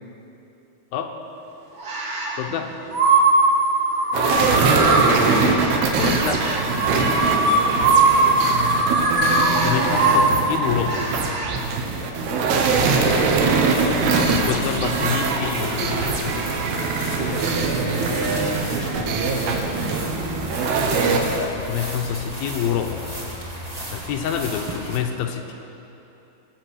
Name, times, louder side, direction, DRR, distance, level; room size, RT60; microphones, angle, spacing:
sound 1, 1.8-2.4 2.9-11.5, right 2 dB, 55° right, 1.3 m, -20 dB
voice 1, 2.4-2.7 5.9-6.6 9.5-11.0 14.0-16.6 21.4-23.0 23.9-25.5, left 8 dB, 75° left, 4 dB, 2.5 m, -27 dB
sound 2, 4.1-21.4, right 4 dB, 90° right, 3.2 m, -22 dB
voice 2, 4.4-4.8 7.3-8.2 12.4-12.8 13.2-14.2 17.1-18.4 18.7-20.1, right 4 dB, 75° right, -3 dB, 1.5 m, -32 dB
sound 3, 12.8-25.0, equal, 30° right, 0.6 m, -34 dB
21.5 x 7.3 x 6.4 m, 3.0 s
omnidirectional pair, 4.5 m